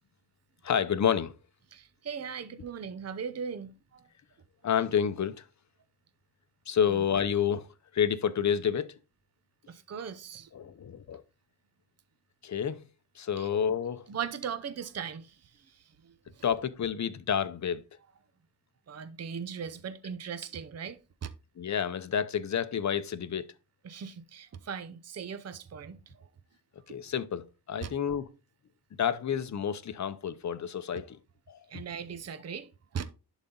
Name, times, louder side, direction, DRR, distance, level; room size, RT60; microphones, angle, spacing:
voice 1, 0.6-1.3 4.6-5.4 6.7-7.7 7.9-8.9 10.5-11.2 12.4-12.8 13.2-14.0 16.4-17.8 21.6-23.5 26.9-28.3 29.0-31.2 31.5-31.6, left 8 dB, 45° left, 0.7 m, -29 dB
voice 2, 1.7-4.0 6.9-7.0 9.7-10.5 13.4-13.5 14.1-15.4 15.7-16.4 18.9-21.3 23.8-26.3 26.9-27.0 27.8-27.9 31.7-33.1, right 7 dB, 40° right, 0.7 m, -39 dB
11.0 x 4.1 x 3.8 m
wide cardioid pair, 150°, 39 cm